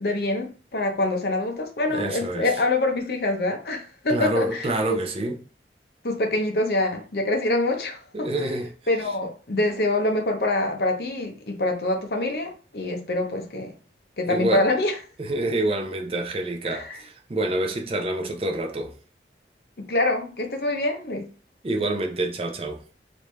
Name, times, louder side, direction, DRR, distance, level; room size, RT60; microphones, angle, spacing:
voice 1, 0.0-5.0 6.0-8.3 8.9-13.7 14.2-15.0 16.6-17.0 19.8-21.2, left 2 dB, 60° left, 0.7 m, -25 dB
voice 2, 1.9-2.5 4.1-5.4 8.1-8.7 14.3-14.7 15.2-18.9 21.6-22.8, right 1 dB, 30° right, 0.4 m, -27 dB
3.1 x 2.6 x 3.2 m
head